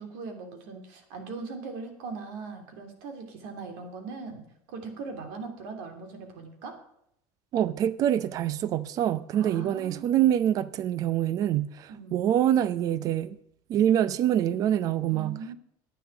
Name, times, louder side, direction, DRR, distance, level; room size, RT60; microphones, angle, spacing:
voice 1, 0.0-4.4 4.7-6.7 9.3-10.2 11.9-12.3 15.1-15.5, right 4 dB, 75° right, 2.9 m, -40 dB
voice 2, 7.5-13.4 13.7-15.4, right 11 dB, 35° right, 0.6 m, -25 dB
11.0 x 9.2 x 7.1 m
cardioid pair, 165°, 10 cm